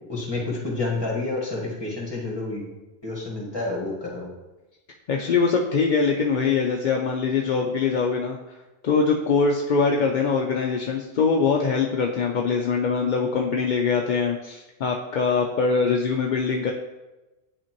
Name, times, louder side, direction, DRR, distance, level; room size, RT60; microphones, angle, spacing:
voice 1, 0.0-2.7 3.0-4.3, left 2 dB, 20° left, -3 dB, 1.7 m, -29 dB
voice 2, 5.1-8.4 8.8-16.7, left 5 dB, 55° left, 1 dB, 0.6 m, -23 dB
10.0 x 4.3 x 3.0 m, 1.1 s
omnidirectional pair, 1.2 m